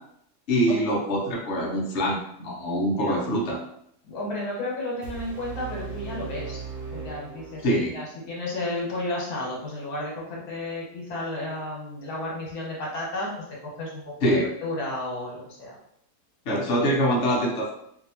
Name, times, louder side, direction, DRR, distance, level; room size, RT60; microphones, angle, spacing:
voice 1, 0.5-3.6 7.6-7.9 14.2-14.5 16.5-17.7, equal, 55° left, -3 dB, 0.9 m, -24 dB
voice 2, 4.0-6.6 6.9-15.8, left 1 dB, 80° left, -4 dB, 1.4 m, -33 dB
sound 1, 5.0-8.0, right 5 dB, 65° right, 0.6 m, -37 dB
2.7 x 2.7 x 2.7 m, 0.72 s
omnidirectional pair, 1.6 m